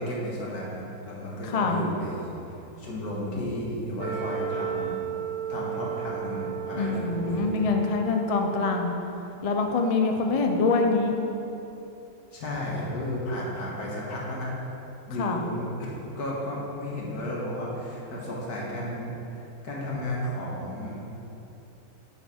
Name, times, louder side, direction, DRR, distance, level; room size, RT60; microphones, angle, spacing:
voice 1, 0.0-2.3 2.8-5.0 5.5-7.7 12.3-14.5 15.1-21.0, left 1 dB, 90° left, -4 dB, 2.1 m, -33 dB
voice 2, 1.4-1.8 6.7-8.9 9.4-11.2 15.2-15.4, left 3 dB, 65° left, 3 dB, 0.3 m, -25 dB
Wind instrument woodwind instrument, 4.0-9.1, right 9 dB, 60° right, 1.6 m, -34 dB
9.4 x 5.9 x 4.3 m, 3.0 s
omnidirectional pair, 1.6 m